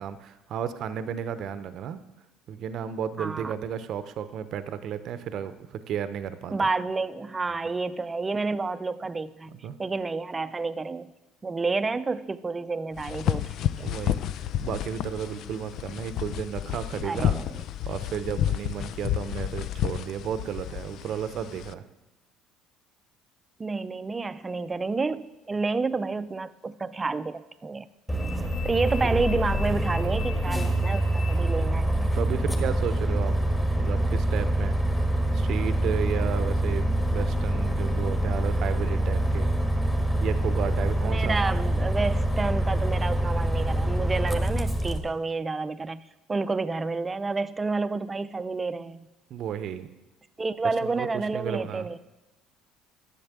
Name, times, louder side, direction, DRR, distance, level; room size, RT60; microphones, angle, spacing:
voice 1, 0.0-2.0 2.5-6.6 9.5-9.8 13.8-14.2 14.6-17.4 17.9-21.8 28.2-28.6 31.9-33.3 33.8-34.8 35.3-39.5 40.2-41.5 49.3-49.9 50.8-51.9, right 8 dB, 60° right, 12 dB, 0.8 m, -33 dB
voice 2, 3.2-3.5 6.5-9.5 9.8-11.1 11.4-13.9 17.0-17.6 23.6-27.9 28.6-31.9 41.0-46.0 46.3-49.1 50.4-52.0, right 3 dB, 25° right, 13 dB, 0.6 m, -29 dB
sound 1, 13.0-21.7, left 11 dB, 60° left, 0.4 m, -31 dB
Bus, 28.1-45.0, right 1 dB, 10° left, 1.7 m, -25 dB
10.5 x 7.4 x 7.4 m, 1.0 s
supercardioid pair, 75°, 0 cm